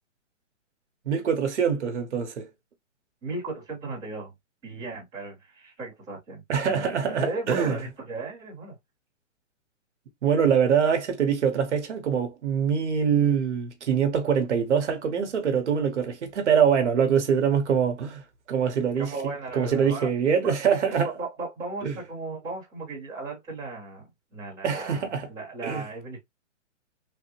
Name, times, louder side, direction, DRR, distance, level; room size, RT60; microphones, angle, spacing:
voice 1, 1.1-2.5 6.5-7.8 10.2-18.2 18.5-19.1 19.5-21.1 21.8-21.9 24.6-25.3 25.6-25.9, right 7 dB, 65° right, 0.9 m, -24 dB
voice 2, 3.2-4.3 4.6-8.8 19.0-20.1 20.4-20.5 21.0-26.2, right 3 dB, 10° right, 1.0 m, -36 dB
3.2 x 2.0 x 2.9 m
hypercardioid pair, 175°, 38 cm